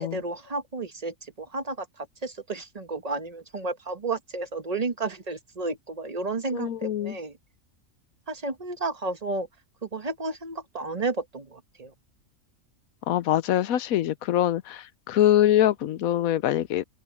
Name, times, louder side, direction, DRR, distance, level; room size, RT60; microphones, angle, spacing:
voice 1, 0.0-7.4 8.3-9.5 9.8-11.9, right 3 dB, 30° right, 1.3 m, -32 dB
voice 2, 6.5-7.2 13.1-16.8, left 12 dB, 80° left, 1.1 m, -24 dB
open air
omnidirectional pair, 1.4 m